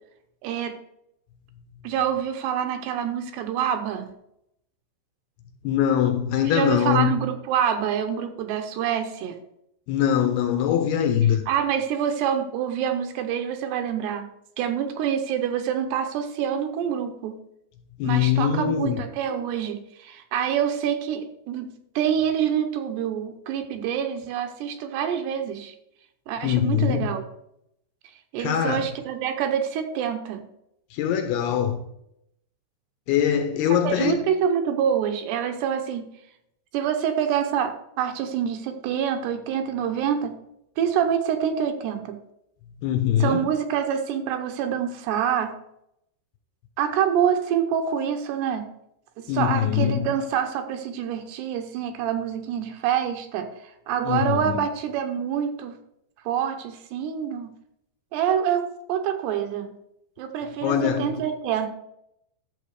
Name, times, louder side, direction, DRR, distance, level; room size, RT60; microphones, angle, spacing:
voice 1, 0.4-0.7 1.8-4.1 6.5-9.4 11.5-14.3 14.6-17.4 18.0-25.7 26.3-27.2 28.3-30.4 33.8-36.1 36.7-40.4 40.8-42.2 43.2-45.6 46.8-48.7 49.2-53.5 53.9-55.8 56.3-57.5 58.1-59.7 60.2-61.7, right 8 dB, 75° right, 2.8 m, -26 dB
voice 2, 5.6-7.2 9.9-11.4 18.0-19.0 26.4-27.1 28.4-28.9 30.9-31.8 33.1-34.2 42.8-43.5 49.3-50.1 54.1-54.6 60.6-61.1, left 9 dB, 75° left, 2.5 m, -22 dB
11.5 x 7.1 x 4.8 m
omnidirectional pair, 5.2 m